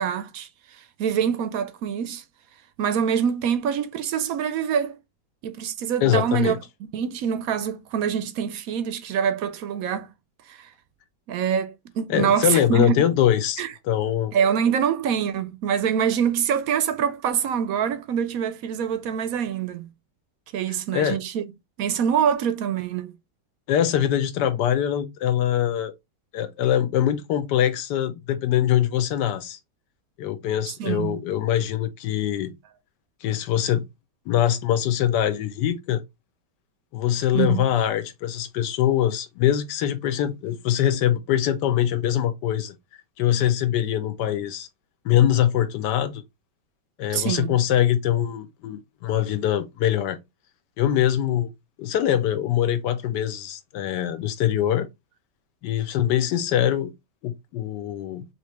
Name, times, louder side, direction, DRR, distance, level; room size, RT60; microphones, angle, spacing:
voice 1, 0.0-2.2 2.8-5.0 5.4-6.6 6.9-10.1 10.5-10.7 11.3-13.0 13.6-13.7 14.3-19.9 20.5-21.4 21.8-23.1 30.7-31.2 37.3-37.6 47.1-47.5, right 8 dB, 70° right, 0.8 m, -25 dB
voice 2, 6.0-6.6 12.1-14.3 20.9-21.2 23.7-25.9 26.3-29.6 30.2-32.5 33.2-33.8 34.3-36.0 36.9-42.8 43.2-44.7 45.0-46.2 47.0-50.2 50.8-51.5 51.8-54.9 55.6-56.9 57.2-58.3, left 11 dB, 75° left, 1.2 m, -23 dB
4.4 x 2.9 x 3.1 m
omnidirectional pair, 1.9 m